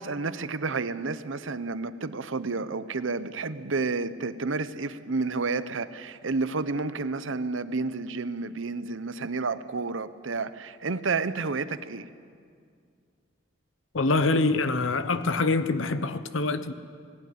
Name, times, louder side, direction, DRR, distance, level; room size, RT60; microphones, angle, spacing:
voice 1, 0.0-12.1, right 3 dB, 70° right, 13 dB, 0.8 m, -30 dB
voice 2, 13.9-16.7, left 3 dB, 75° left, 12 dB, 0.9 m, -25 dB
18.5 x 17.5 x 9.3 m, 2.2 s
head